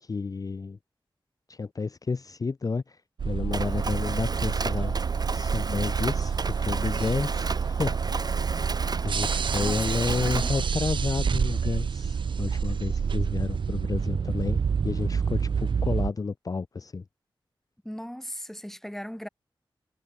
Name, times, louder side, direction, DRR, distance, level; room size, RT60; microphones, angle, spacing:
voice 1, 0.0-0.8 1.5-5.0 5.3-8.8 9.0-14.6 14.8-17.0, left 4 dB, 45° left, 0.5 m, -31 dB
sound 1, 3.2-16.1, right 6 dB, 65° right, 0.4 m, -28 dB
Mechanisms, 3.5-10.6, right 4 dB, 50° right, 1.7 m, -34 dB
voice 2, 9.5-10.5 17.8-19.3, equal, 5° left, 4.5 m, -38 dB
wide cardioid pair, 65°, 9 cm